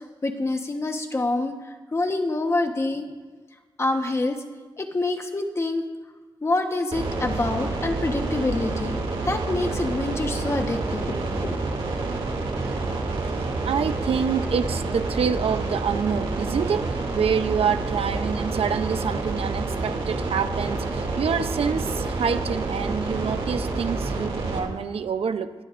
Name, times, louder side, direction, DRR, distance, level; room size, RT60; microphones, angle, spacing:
voice 1, 0.2-1.5 1.9-3.1 3.8-4.4 4.8-5.8 6.4-9.0 9.2-11.6, left 2 dB, 30° left, 4 dB, 1.2 m, -26 dB
sound 1, 6.9-24.6, right 3 dB, 70° right, 2.7 m, -28 dB
voice 2, 13.6-16.9 17.1-25.5, right 6 dB, 90° right, 10 dB, 0.7 m, -27 dB
21.0 x 16.5 x 2.6 m, 1.3 s
wide cardioid pair, 150°, 10 cm